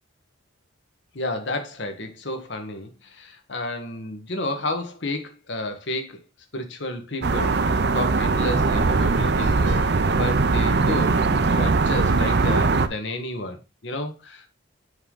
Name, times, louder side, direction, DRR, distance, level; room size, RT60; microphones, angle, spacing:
voice 1, 1.1-6.2 6.5-14.5, left 2 dB, 60° left, 1.3 m, -31 dB
sound 1, 7.2-12.9, right 3 dB, 55° right, 0.7 m, -20 dB
7.9 x 3.8 x 5.3 m
head